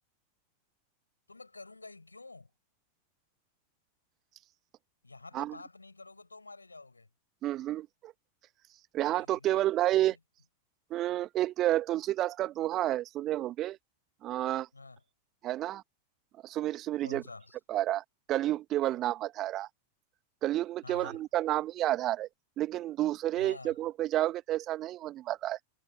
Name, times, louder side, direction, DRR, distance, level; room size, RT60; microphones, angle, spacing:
voice 1, 1.3-2.5 5.0-7.1 9.0-9.7 10.0-10.2 14.7-15.0 17.0-17.6 20.8-21.2 23.4-23.8, left 3 dB, 80° left, 7.2 m, -49 dB
voice 2, 7.4-8.1 8.9-10.2 10.9-13.8 14.2-14.7 15.4-15.8 16.4-17.2 17.7-19.7 20.4-22.3 22.6-25.6, right 14 dB, 35° right, 1.3 m, -30 dB
figure-of-eight pair, 90°, 0 cm